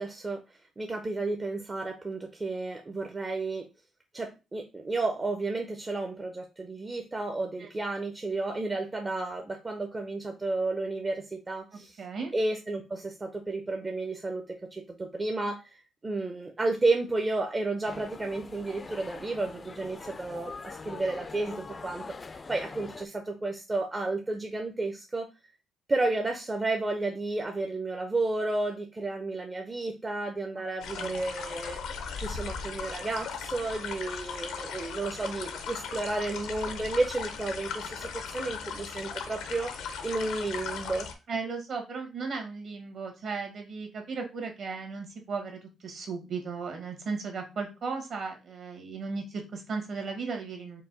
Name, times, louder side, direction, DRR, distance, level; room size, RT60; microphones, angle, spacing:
voice 1, 0.0-3.6 4.1-12.0 12.3-22.0 22.3-25.3 25.9-39.7 40.0-41.1, right 2 dB, 25° right, 4 dB, 0.5 m, -32 dB
voice 2, 11.7-12.3 30.6-31.2 41.3-50.8, right 4 dB, 60° right, 3 dB, 1.4 m, -36 dB
sound 1, 17.8-23.1, left 4 dB, 30° left, 0.4 m, -43 dB
sound 2, 30.8-41.1, left 6 dB, 85° left, 0.6 m, -38 dB
4.6 x 2.2 x 3.9 m, 0.28 s
cardioid pair, 90°, 0 cm